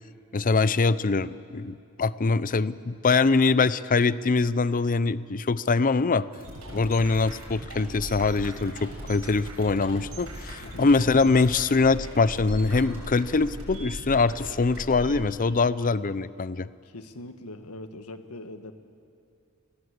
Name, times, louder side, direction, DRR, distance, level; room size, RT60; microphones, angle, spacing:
voice 1, 0.3-6.3 6.7-16.7, left 4 dB, 40° left, 16 dB, 0.6 m, -23 dB
sound 1, 6.3-15.2, right 1 dB, 75° right, 7.1 m, -39 dB
voice 2, 16.8-18.7, left 2 dB, 80° left, 8 dB, 1.5 m, -42 dB
30.0 x 18.5 x 8.1 m, 2.5 s
head